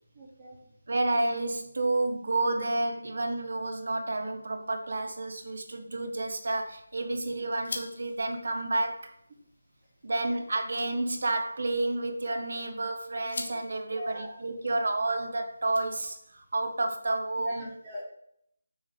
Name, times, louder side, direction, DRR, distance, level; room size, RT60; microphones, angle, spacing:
voice 1, 0.1-0.6 13.9-14.3 17.4-18.0, equal, 15° right, -8 dB, 2.4 m, -40 dB
voice 2, 0.9-9.1 10.0-17.7, right 2 dB, 60° right, 5 dB, 1.1 m, -30 dB
sound 1, 6.1-16.4, left 2 dB, 70° left, 1.5 m, -47 dB
6.1 x 3.8 x 5.2 m, 0.71 s
figure-of-eight pair, 170°, 0 cm